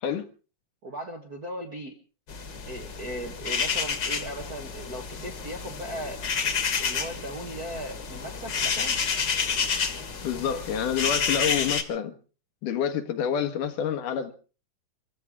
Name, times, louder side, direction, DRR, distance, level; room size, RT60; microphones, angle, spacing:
voice 1, 0.8-1.9 2.7-6.2 6.8-9.0 10.3-10.6, right 1 dB, 55° right, 1.0 m, -38 dB
sound 1, 2.3-11.8, left 6 dB, 45° left, 1.7 m, -29 dB
voice 2, 10.2-12.1 12.6-14.3, left 8 dB, 80° left, 2.9 m, -28 dB
26.0 x 15.0 x 3.6 m
omnidirectional pair, 3.7 m